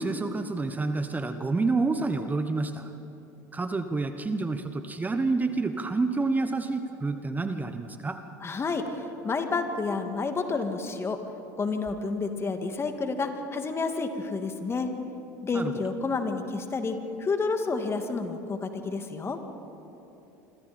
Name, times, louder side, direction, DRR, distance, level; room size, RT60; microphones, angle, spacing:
voice 1, 0.0-2.9 3.5-8.2 15.5-15.7, right 3 dB, 20° right, 8 dB, 1.2 m, -28 dB
voice 2, 8.4-8.8 9.2-11.2 11.6-14.9 15.4-19.4, left 4 dB, 30° left, 6 dB, 2.2 m, -30 dB
26.5 x 25.5 x 4.4 m, 3.0 s
hypercardioid pair, 80°, 9 cm